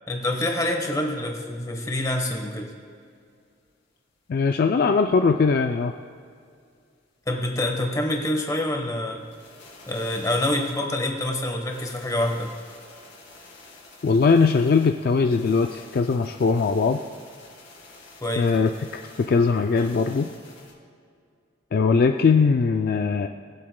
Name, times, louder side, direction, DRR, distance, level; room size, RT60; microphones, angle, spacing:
voice 1, 0.1-2.7 7.3-9.2 9.9-12.5 18.2-18.5, left 1 dB, 15° left, 2 dB, 1.1 m, -26 dB
sound 1, 2.3-2.4 2.6-2.7 3.1-3.2 3.6-3.7 4.2-4.7 5.2-5.3 5.7-5.8 6.2-6.3 6.7-6.8 7.2-7.3 7.7-7.8 8.2-8.3 8.8-8.9 9.1-20.7, left 3 dB, 70° left, 2.7 m, -49 dB
voice 2, 4.3-5.9 14.0-17.0 18.4-18.7 19.2-20.3 21.7-23.3, left 4 dB, 50° left, 5 dB, 0.3 m, -20 dB
20.5 x 7.6 x 2.2 m, 2.3 s
head